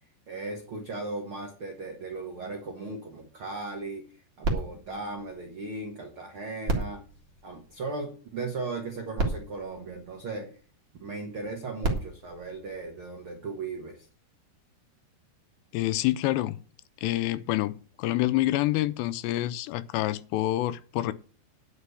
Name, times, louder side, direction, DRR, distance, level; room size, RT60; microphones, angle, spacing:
voice 1, 0.3-7.0 7.4-10.6 11.0-14.1, right 3 dB, 90° right, 1.1 m, -37 dB
sound 1, 4.4-6.1 6.6-8.2 8.9-9.0 9.2-10.7 11.6-13.4 14.1-14.2, right 2 dB, 45° right, 1.8 m, -34 dB
voice 2, 15.7-16.6 17.0-21.1, left 16 dB, 85° left, 2.8 m, -27 dB
9.7 x 6.1 x 8.3 m
omnidirectional pair, 5.0 m